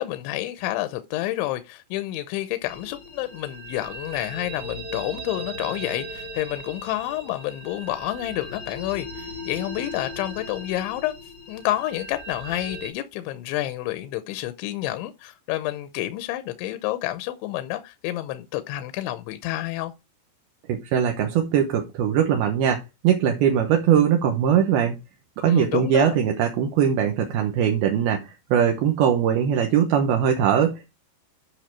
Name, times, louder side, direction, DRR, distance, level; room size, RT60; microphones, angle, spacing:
voice 1, 0.0-11.2 11.5-19.9 25.4-26.2, left 15 dB, 80° left, 3.0 m, -29 dB
sound 1, 2.7-12.9, equal, 30° right, 2.2 m, -38 dB
voice 2, 20.7-25.0 25.4-30.9, right 9 dB, 70° right, 2.6 m, -21 dB
10.0 x 5.7 x 4.6 m
omnidirectional pair, 5.5 m